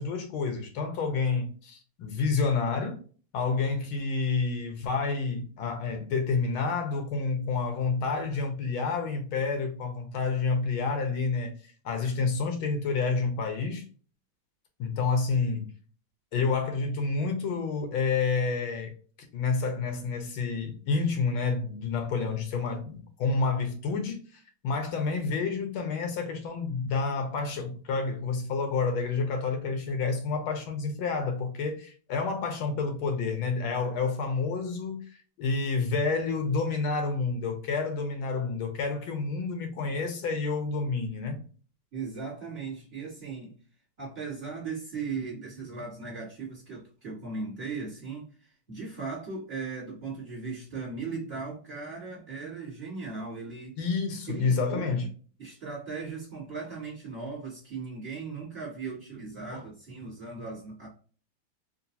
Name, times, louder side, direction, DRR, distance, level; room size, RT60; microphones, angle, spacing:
voice 1, 0.0-3.0 3.3-13.8 14.8-15.7 16.3-18.9 19.3-35.0 35.4-41.4 53.8-55.1 59.5-59.6, left 4 dB, 75° left, 1.5 m, -29 dB
voice 2, 41.9-43.6 44.0-53.7 54.3-55.1 55.4-60.9, right 4 dB, 30° right, 1.7 m, -38 dB
3.9 x 2.5 x 2.6 m
omnidirectional pair, 2.3 m